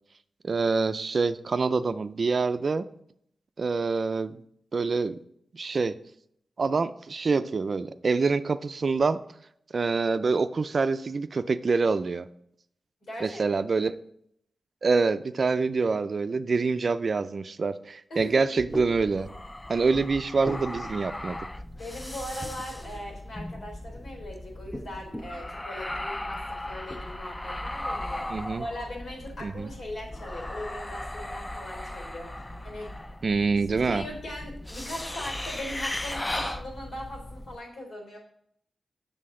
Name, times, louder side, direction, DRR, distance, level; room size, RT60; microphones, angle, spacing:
voice 1, 0.4-2.9 3.6-4.4 4.7-5.2 5.5-6.0 6.6-9.2 9.7-12.3 13.2-13.9 14.8-19.3 19.7-21.4 28.3-28.7 29.4-29.7 33.2-34.0, right 4 dB, 50° right, 12 dB, 0.4 m, -26 dB
voice 2, 13.1-13.4 18.1-18.4 21.7-32.9 33.8-38.2, left 1 dB, 75° left, 0 dB, 3.3 m, -40 dB
sound 1, 18.2-18.3 18.6-18.9 19.9-20.7 22.4-23.2 23.8-24.1 24.7-25.4 26.2-26.3 26.7-27.0, equal, ahead, 0.9 m, -38 dB
sound 2, 18.7-37.6, left 1 dB, 15° left, 0.4 m, -37 dB
7.7 x 6.5 x 3.7 m, 0.70 s
wide cardioid pair, 95°, 0 cm